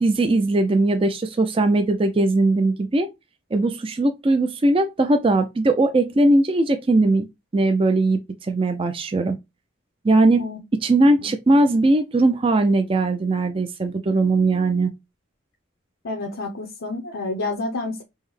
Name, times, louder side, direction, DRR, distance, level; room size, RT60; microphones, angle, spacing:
voice 1, 0.0-3.1 3.5-7.2 7.5-9.4 10.0-10.4 10.8-14.9, right 2 dB, 25° right, 0.4 m, -19 dB
voice 2, 16.0-18.0, left 2 dB, 85° left, 0.7 m, -29 dB
5.5 x 2.1 x 3.1 m
head